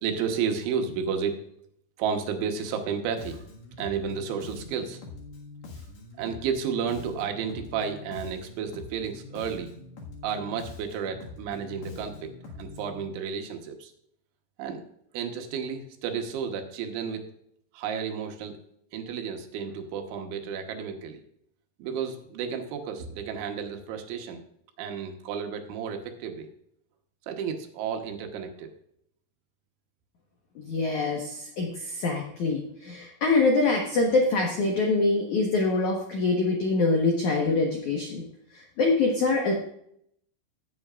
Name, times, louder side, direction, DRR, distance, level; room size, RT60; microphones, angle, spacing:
voice 1, 0.0-1.4 2.0-3.5 3.8-5.0 6.2-9.7 10.2-13.9 14.6-14.8 15.1-17.3 17.7-18.6 18.9-21.2 21.8-24.4 24.8-26.5 27.3-28.7, right 6 dB, 75° right, 4 dB, 3.4 m, -32 dB
Bass guitar, 3.2-13.1, left 3 dB, 55° left, 2.1 m, -44 dB
voice 2, 30.6-38.2 38.5-39.5, left 3 dB, 80° left, 0 dB, 1.7 m, -25 dB
17.0 x 7.8 x 2.4 m, 0.71 s
omnidirectional pair, 5.6 m